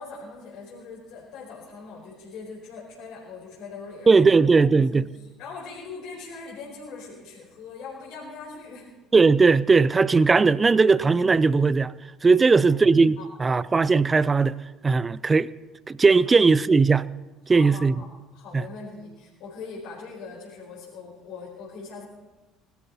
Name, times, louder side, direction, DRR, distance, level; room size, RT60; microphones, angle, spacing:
voice 1, 0.0-4.3 4.7-8.9 12.4-12.8 13.2-13.3 16.2-16.3 17.4-18.1 18.3-22.0, left 4 dB, 60° left, 4.5 m, -41 dB
voice 2, 4.1-5.1 9.1-11.9 12.2-14.6 14.8-15.5 15.9-17.1 17.5-18.0 18.5-18.7, right 4 dB, 25° right, 0.5 m, -18 dB
20.5 x 13.0 x 4.3 m
figure-of-eight pair, 60°, 0 cm